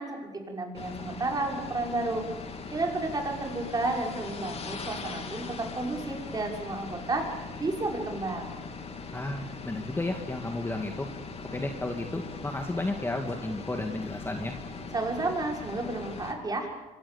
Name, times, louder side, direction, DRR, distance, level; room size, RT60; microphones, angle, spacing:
voice 1, 0.0-2.2 2.7-8.6 14.9-16.7, right 2 dB, 25° right, 1 dB, 5.9 m, -32 dB
sound 1, 0.7-16.3, left 4 dB, 35° left, 3.4 m, -40 dB
voice 2, 9.1-11.1 11.5-14.5, left 2 dB, 15° left, 4 dB, 2.1 m, -32 dB
26.0 x 26.0 x 7.2 m, 1.1 s
cardioid pair, 110°, 17 cm